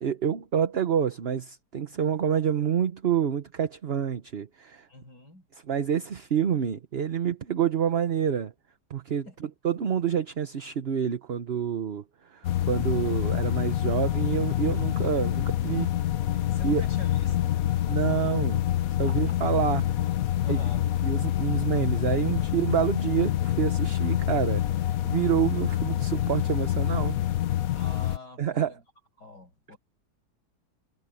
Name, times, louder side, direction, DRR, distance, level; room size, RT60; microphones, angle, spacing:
voice 1, 0.0-4.9 5.5-8.5 8.9-15.9 16.6-16.8 17.9-18.6 19.0-20.1 20.5-20.6 21.0-27.2 28.4-28.8, right 8 dB, 45° right, 1.0 m, -28 dB
voice 2, 4.9-5.4 9.3-9.5 16.5-17.7 19.1-19.4 20.4-20.9 27.7-28.7 29.2-29.8, left 2 dB, 90° left, 7.0 m, -45 dB
sound 1, 12.4-28.2, left 12 dB, 65° left, 1.1 m, -26 dB
omnidirectional pair, 1.8 m